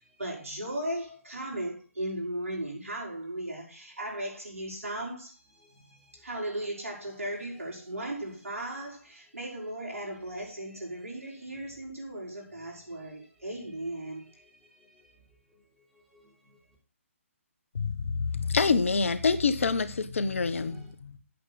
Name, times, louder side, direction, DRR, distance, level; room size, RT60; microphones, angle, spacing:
voice 1, 0.2-5.3 6.1-14.3, right 1 dB, 75° right, 5.4 m, -36 dB
voice 2, 5.6-6.2 12.9-13.5 14.4-15.1 15.5-15.6 15.9-16.6 20.5-20.9, left 1 dB, ahead, 3.8 m, -58 dB
voice 3, 17.7-21.2, left 4 dB, 65° left, 1.3 m, -27 dB
8.5 x 8.4 x 5.9 m
figure-of-eight pair, 145°, 8 cm